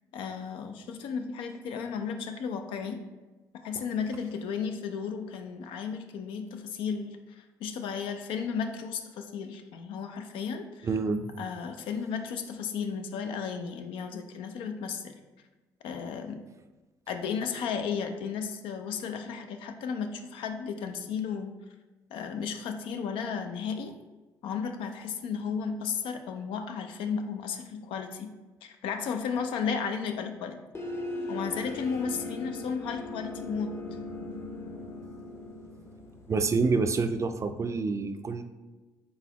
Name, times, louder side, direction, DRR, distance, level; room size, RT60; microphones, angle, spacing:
voice 1, 0.1-3.0 3.6-10.9 11.4-15.1 15.8-16.4 17.1-21.5 22.1-23.9 24.4-28.3 28.6-30.6 31.3-33.7, left 6 dB, 75° left, 6 dB, 0.4 m, -34 dB
voice 2, 10.8-11.2 36.3-38.4, right 4 dB, 35° right, 8 dB, 0.4 m, -27 dB
sound 1, 30.7-37.3, left 2 dB, 30° left, 0.7 m, -39 dB
3.9 x 3.6 x 2.9 m, 1.2 s
supercardioid pair, 60°, 9 cm